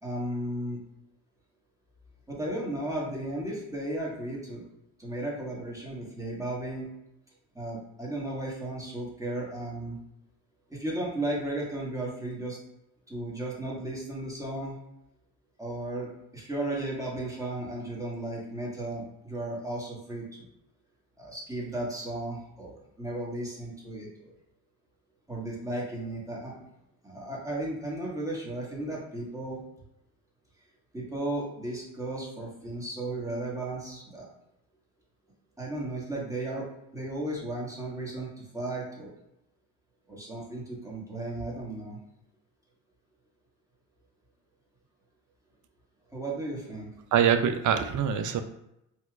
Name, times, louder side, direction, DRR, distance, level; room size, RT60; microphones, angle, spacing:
voice 1, 0.0-0.8 2.3-4.6 5.0-6.9 7.5-10.0 10.7-12.6 13.1-14.8 15.6-20.5 21.2-24.3 25.3-26.5 27.0-29.6 30.9-34.3 35.6-36.6 36.9-39.1 40.1-42.0 46.1-46.9, right 1 dB, 5° right, -4 dB, 1.3 m, -35 dB
voice 2, 47.1-48.4, right 8 dB, 45° right, 8 dB, 0.4 m, -24 dB
4.3 x 2.3 x 2.3 m, 0.84 s
supercardioid pair, 70°, 45 cm